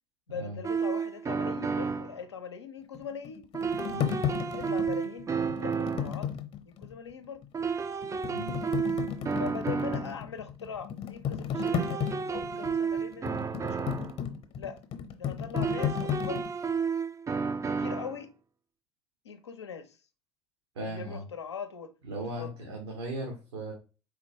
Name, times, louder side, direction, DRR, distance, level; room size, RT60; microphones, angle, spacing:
voice 1, 0.3-3.5 4.5-5.3 5.6-6.3 6.6-7.5 9.4-12.0 12.3-13.9 14.6-14.8 15.2-16.5 17.6-18.3 19.2-20.0 20.8-21.9 22.4-22.5, left 6 dB, 85° left, 0.5 m, -41 dB
sound 1, 0.6-2.2 3.5-6.2 7.5-10.2 11.5-14.2 15.5-18.2, right 5 dB, 20° right, 0.4 m, -32 dB
sound 2, 2.9-7.0 7.4-7.5 8.0-16.5, left 8 dB, 45° left, 0.8 m, -34 dB
voice 2, 20.7-21.2 22.0-23.7, right 1 dB, 75° right, 1.2 m, -37 dB
4.4 x 3.6 x 2.8 m
figure-of-eight pair, 60°, 14 cm